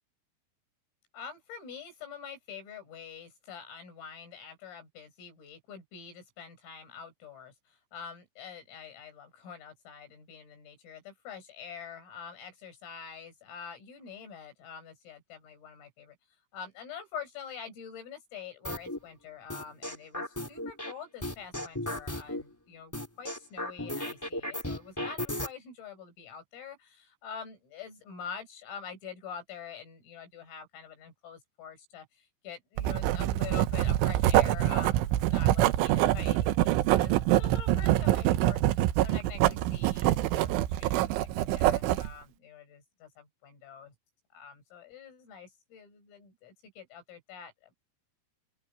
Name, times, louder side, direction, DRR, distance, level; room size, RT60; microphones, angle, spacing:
voice 1, 1.1-16.2 16.5-22.9 23.2-43.9 44.3-47.7, left 7 dB, 80° left, 11.0 m, -46 dB
sound 1, 18.6-19.0 19.5-20.9 21.2-22.4 22.9-25.5, left 1 dB, 5° left, 2.2 m, -35 dB
Writing, 32.8-42.1, right 14 dB, 75° right, 3.2 m, -25 dB
open air
omnidirectional pair, 5.9 m